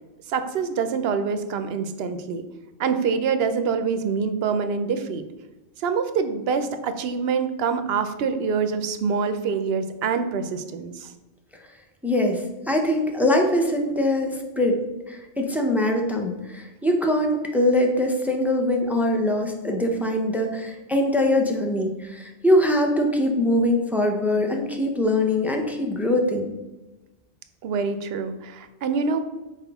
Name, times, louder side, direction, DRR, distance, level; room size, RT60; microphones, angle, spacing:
voice 1, 0.3-2.4 2.8-5.2 5.8-11.1 27.6-29.2, right 5 dB, 65° right, 9 dB, 0.7 m, -25 dB
voice 2, 12.0-14.8 15.1-26.5, left 1 dB, ahead, 2 dB, 0.4 m, -22 dB
5.9 x 4.6 x 3.5 m, 1.1 s
omnidirectional pair, 1.2 m